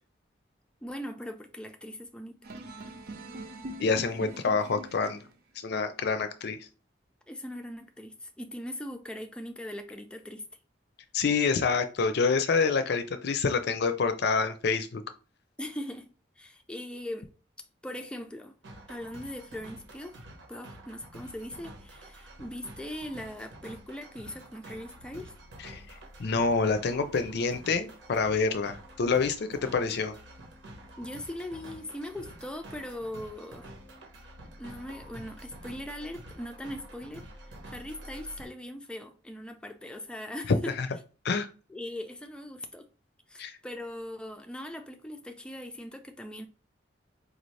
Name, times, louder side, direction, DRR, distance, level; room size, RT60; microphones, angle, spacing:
voice 1, 0.8-2.4 7.3-10.4 15.6-16.1 16.4-17.3 17.8-18.5 18.9-25.3 31.0-33.7 34.6-40.8 41.7-42.8 43.3-46.5, left 1 dB, 5° left, 0.4 m, -40 dB
sound 1, 2.4-5.3, right 1 dB, 55° right, 0.7 m, -42 dB
voice 2, 3.8-5.2 5.6-6.6 11.1-15.0 25.6-25.8 26.2-30.1 40.8-40.9 41.2-41.5 43.4-43.6, left 4 dB, 60° left, 0.5 m, -27 dB
sound 2, 18.6-38.4, right 1 dB, 80° right, 1.1 m, -48 dB
4.8 x 2.6 x 3.2 m
head